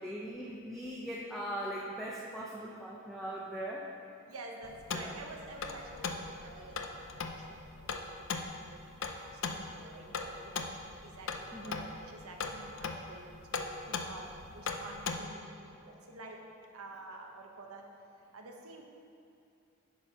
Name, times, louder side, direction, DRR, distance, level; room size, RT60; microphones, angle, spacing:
voice 1, 0.0-3.9 4.9-5.2 11.5-11.8, equal, ahead, -5 dB, 0.5 m, -40 dB
voice 2, 4.3-8.1 8.3-8.8 9.4-10.6 11.0-16.4 16.7-17.8 18.3-18.8, right 2 dB, 80° right, 1 dB, 1.0 m, -49 dB
sound 1, 4.6-15.2, left 4 dB, 60° left, 0.5 m, -40 dB
10.0 x 4.4 x 5.5 m, 2.5 s
head